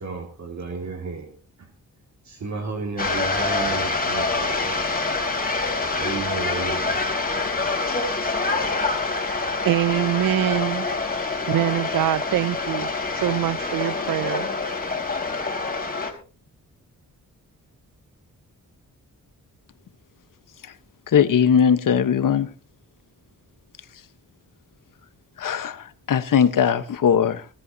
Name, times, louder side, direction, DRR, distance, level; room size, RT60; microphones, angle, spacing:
voice 1, 0.0-1.7 2.2-4.9 5.9-7.0 8.0-8.2, right 4 dB, 55° right, 2.3 m, -33 dB
sound 1, 3.0-16.1, left 3 dB, 25° left, 3.5 m, -26 dB
voice 2, 9.6-10.9 11.5-14.5, right 14 dB, 80° right, 0.5 m, -24 dB
voice 3, 21.1-22.5 25.4-27.5, left 8 dB, 70° left, 1.2 m, -20 dB
19.5 x 13.0 x 2.8 m
cardioid pair, 95°, 33 cm